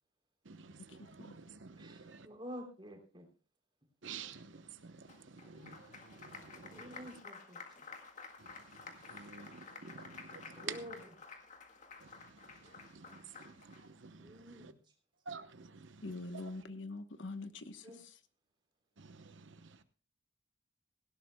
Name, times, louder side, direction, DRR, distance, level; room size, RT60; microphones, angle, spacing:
voice 1, 0.5-2.3 4.0-7.0 8.4-10.8 12.0-14.7 15.3-16.5 19.0-19.8, right 6 dB, 75° right, 0.9 m, -51 dB
voice 2, 1.8-3.3 6.7-7.9 10.5-11.1 14.2-14.8 17.8-18.0, equal, 25° right, 3.3 m, -49 dB
Applause, 5.1-13.8, left 4 dB, 40° left, 1.9 m, -52 dB
voice 3, 16.0-17.9, left 2 dB, 75° left, 1.0 m, -44 dB
18.0 x 16.5 x 2.2 m
head